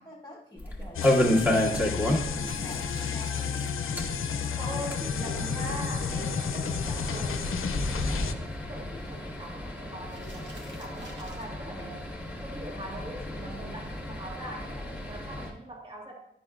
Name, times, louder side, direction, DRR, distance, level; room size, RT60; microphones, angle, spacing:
voice 1, 0.0-3.5 4.3-7.3, left 1 dB, 15° left, -5 dB, 1.1 m, -48 dB
sound 1, 0.6-2.5 2.8-2.9 3.2-3.3 3.8-15.5, left 1 dB, 10° right, 1.7 m, -31 dB
sound 2, 0.9-8.3, left 6 dB, 85° left, 0.5 m, -32 dB
sound 3, 2.4-4.4 4.7-4.8 5.1-5.2 5.4-5.5 5.9-6.2 8.3-9.5 10.0-11.5, right 2 dB, 60° right, 1.4 m, -51 dB
voice 2, 4.6-7.5 7.9-12.1 12.4-16.1, right 1 dB, 25° right, -1 dB, 1.6 m, -42 dB
10.0 x 6.3 x 2.4 m, 0.76 s
wide cardioid pair, 90°, 21 cm